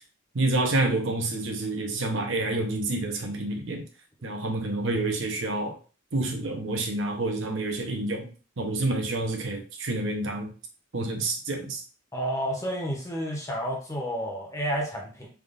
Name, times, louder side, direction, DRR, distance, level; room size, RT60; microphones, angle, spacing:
voice 1, 0.3-3.8 4.2-5.8 6.1-8.3 8.6-10.5 10.9-11.8, right 2 dB, 65° right, 3 dB, 0.8 m, -28 dB
voice 2, 12.1-15.3, equal, 15° left, 0 dB, 0.8 m, -30 dB
3.5 x 2.5 x 3.8 m, 0.37 s
head